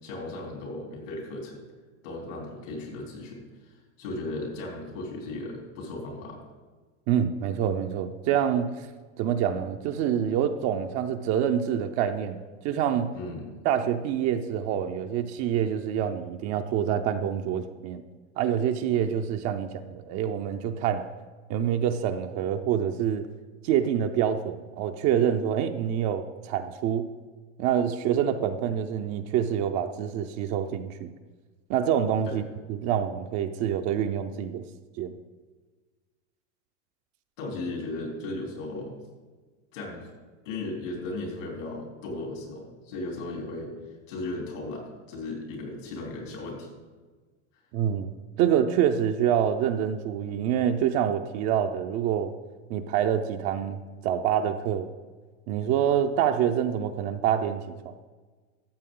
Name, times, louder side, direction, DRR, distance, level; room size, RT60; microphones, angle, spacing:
voice 1, 0.0-1.6 2.0-6.4 13.1-13.5 32.3-32.4 37.4-38.9 39.7-40.1 40.5-43.7 44.1-46.7, left 2 dB, 80° left, -1 dB, 3.7 m, -36 dB
voice 2, 7.1-8.9 9.2-12.4 12.6-13.1 13.6-18.0 18.4-21.0 21.5-23.3 23.6-27.1 27.6-31.1 31.7-32.4 32.7-34.6 35.0-35.1 47.7-52.3 52.7-54.9 55.5-58.1, right 9 dB, 45° right, 7 dB, 0.7 m, -26 dB
13.0 x 7.7 x 3.9 m, 1.4 s
supercardioid pair, 130°, 36 cm